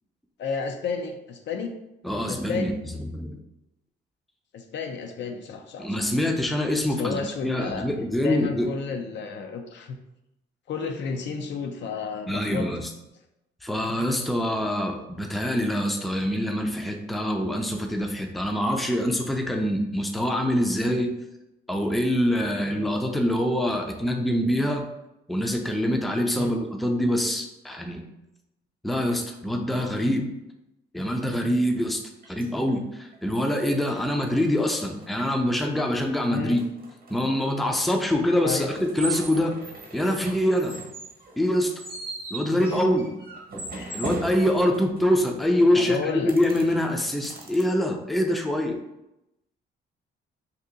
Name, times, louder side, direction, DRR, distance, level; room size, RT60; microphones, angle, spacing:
voice 1, 0.4-1.8 2.3-2.8 4.5-6.1 6.9-7.9 8.2-10.0 10.7-12.7 26.3-26.5 36.3-36.6 38.4-38.7 42.5-42.6 43.7-44.0 45.7-46.3, left 5 dB, 65° left, 5 dB, 0.5 m, -32 dB
voice 2, 2.0-2.7 3.1-3.4 5.8-8.7 12.3-12.9 13.6-21.1 21.7-24.8 25.3-28.0 28.8-30.3 30.9-32.0 32.3-36.6 37.1-39.5 39.9-40.7 41.4-41.7 42.3-43.1 43.9-48.8, left 1 dB, ahead, 2 dB, 0.4 m, -25 dB
sound 1, 31.5-31.6 32.2-32.7 33.1-33.2 33.5-35.4 35.6-37.8 38.7-45.2 46.3-47.6, right 2 dB, 50° right, 0.9 m, -38 dB
2.8 x 2.6 x 3.7 m, 0.89 s
cardioid pair, 90°, 20 cm